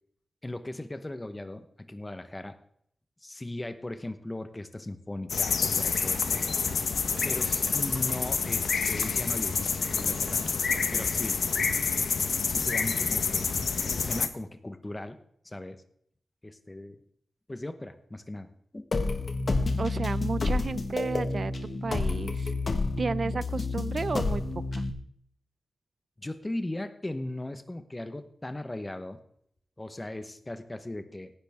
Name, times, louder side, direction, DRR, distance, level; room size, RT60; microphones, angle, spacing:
voice 1, 0.4-2.6 3.2-6.5 7.2-9.6 9.9-10.4 10.9-11.4 12.5-13.5 13.8-15.2 15.4-15.8 16.4-17.0 17.5-18.5 18.7-18.9 26.2-29.2 29.8-31.3, left 1 dB, 20° left, 9 dB, 1.2 m, -38 dB
sound 1, 5.3-14.3, left 5 dB, 80° left, 1.0 m, -28 dB
sound 2, 6.7-11.0 12.2-12.6, right 3 dB, 85° right, 2.2 m, -49 dB
sound 3, 18.9-24.9, left 3 dB, 50° left, 1.5 m, -29 dB
voice 2, 19.8-21.5 21.8-22.5 23.0-24.4 24.7-24.8, right 4 dB, 55° right, 18 dB, 0.4 m, -32 dB
17.5 x 10.0 x 3.7 m, 0.69 s
wide cardioid pair, 100°, 0 cm